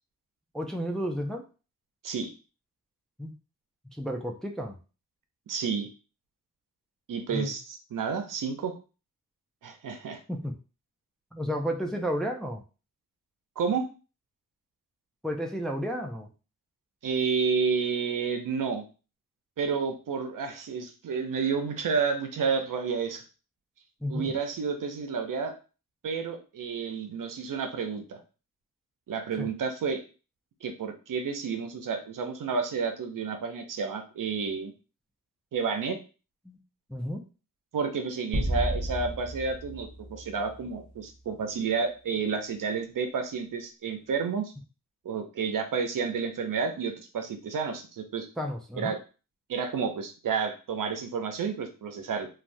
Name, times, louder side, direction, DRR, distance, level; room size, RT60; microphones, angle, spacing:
voice 1, 0.5-1.4 3.2-3.3 3.8-4.8 7.3-7.5 10.3-10.5 11.3-12.6 15.2-16.3 24.0-24.3 29.4-29.5 36.5-36.6 36.9-37.2 48.4-48.9, equal, ahead, 2 dB, 0.4 m, -32 dB
voice 2, 5.5-5.9 7.1-8.8 9.6-10.2 13.6-13.9 17.0-18.8 19.6-23.2 24.1-25.6 26.0-28.2 29.1-30.0 30.6-34.7 35.5-36.0 37.7-44.5 45.0-48.3 48.7-49.0 49.5-52.3, right 5 dB, 70° right, 6 dB, 0.6 m, -30 dB
sound 1, 38.3-41.0, right 1 dB, 25° right, 0.9 m, -33 dB
3.1 x 2.3 x 2.6 m, 0.34 s
wide cardioid pair, 85°, 33 cm